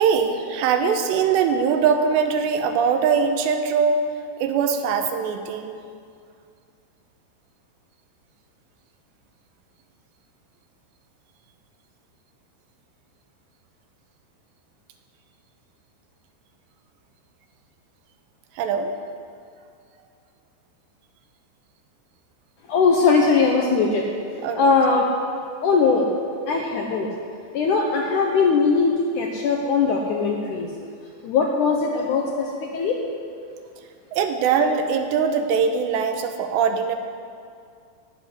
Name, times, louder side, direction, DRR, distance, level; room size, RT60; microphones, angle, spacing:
voice 1, 0.0-4.0 4.4-5.8 18.6-18.9 24.4-24.7 34.1-37.0, right 6 dB, 80° right, 6 dB, 3.0 m, -21 dB
voice 2, 22.7-24.0 24.6-25.1 25.6-26.1 26.5-27.1 27.5-30.7 31.2-33.0, left 4 dB, 80° left, 0 dB, 1.8 m, -20 dB
15.0 x 7.3 x 9.7 m, 2.3 s
omnidirectional pair, 5.1 m